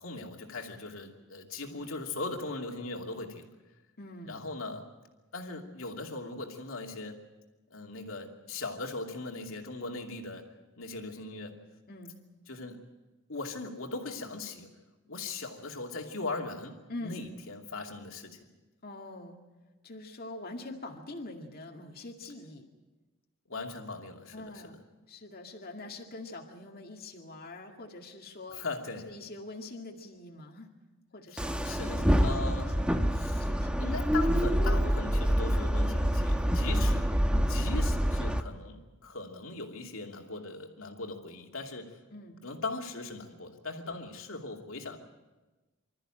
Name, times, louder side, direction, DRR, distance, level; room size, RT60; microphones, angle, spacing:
voice 1, 0.0-3.5 4.3-4.9 5.3-7.2 7.7-11.6 12.5-12.8 13.3-14.7 15.1-18.4 23.5-24.8 28.5-29.1 31.6-32.8 33.1-33.5 33.8-37.0 37.5-41.9 42.4-45.0, left 3 dB, 70° left, 2 dB, 2.7 m, -39 dB
voice 2, 4.0-4.5 11.9-12.1 16.9-17.3 18.8-19.4 19.8-22.6 24.3-24.8 25.1-28.6 29.0-30.7 31.1-31.6 31.9-33.0 33.4-33.8 37.3-37.6 42.1-42.4 43.8-44.0, left 2 dB, 45° left, 1 dB, 2.2 m, -44 dB
sound 1, 31.4-38.4, equal, 5° right, 1.0 m, -27 dB
26.0 x 14.0 x 8.9 m, 1.2 s
head